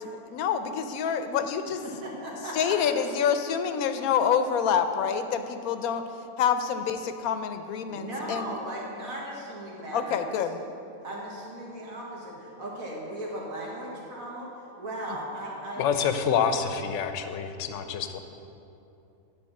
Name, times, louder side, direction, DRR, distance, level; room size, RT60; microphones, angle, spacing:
voice 1, 0.0-1.8 2.6-6.0 6.4-8.5 9.9-10.5, left 7 dB, 85° left, 9 dB, 1.1 m, -27 dB
voice 2, 1.7-2.8 7.9-10.5 11.0-16.1, right 1 dB, 70° right, -3 dB, 2.2 m, -37 dB
voice 3, 15.8-18.2, left 7 dB, 65° left, 8 dB, 0.9 m, -27 dB
10.5 x 4.8 x 7.4 m, 2.8 s
omnidirectional pair, 1.5 m